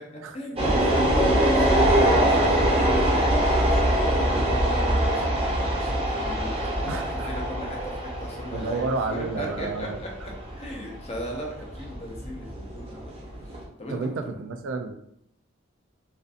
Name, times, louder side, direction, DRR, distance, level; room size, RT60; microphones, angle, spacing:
voice 1, 0.3-3.6 4.2-13.1 13.8-14.0 14.2-14.5, left 1 dB, 30° left, -1 dB, 0.5 m, -37 dB
sound 1, 0.6-13.6, right 1 dB, 30° right, 0.6 m, -23 dB
voice 2, 6.9-7.3 8.5-10.0 13.9-14.9, right 3 dB, 70° right, 7 dB, 0.3 m, -30 dB
2.5 x 2.4 x 2.4 m, 0.73 s
head